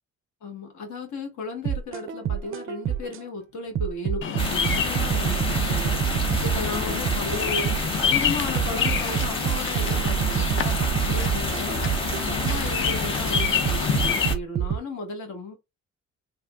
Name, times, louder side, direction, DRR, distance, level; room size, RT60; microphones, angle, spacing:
voice 1, 0.4-15.6, left 3 dB, 70° left, 1.4 m, -35 dB
sound 1, 1.7-3.2 3.8-8.0 8.6-12.8 13.4-14.8, right 9 dB, 45° right, 0.4 m, -27 dB
Bird vocalization bird call bird song, 4.2-14.3, left 7 dB, 45° left, 0.5 m, -29 dB
sound 2, 4.4-14.3, left 1 dB, 15° left, 1.1 m, -29 dB
3.4 x 2.5 x 2.3 m
cardioid pair, 90°, 30 cm